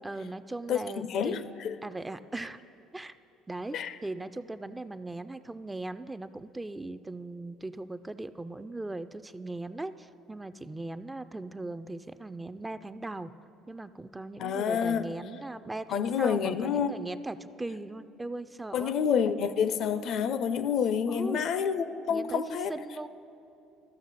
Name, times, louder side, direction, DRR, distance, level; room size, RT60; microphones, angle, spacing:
voice 1, 0.0-1.3 1.8-2.6 2.9-3.1 3.5-13.3 13.7-18.9 21.1-21.5 22.1-22.4 22.7-23.1, right 2 dB, 15° right, 12 dB, 0.4 m, -39 dB
voice 2, 0.7-1.8 3.7-3.9 14.4-15.1 15.9-16.9 18.7-22.7, left 7 dB, 60° left, 12 dB, 0.4 m, -28 dB
13.5 x 6.1 x 4.0 m, 2.7 s
hypercardioid pair, 65°, 0 cm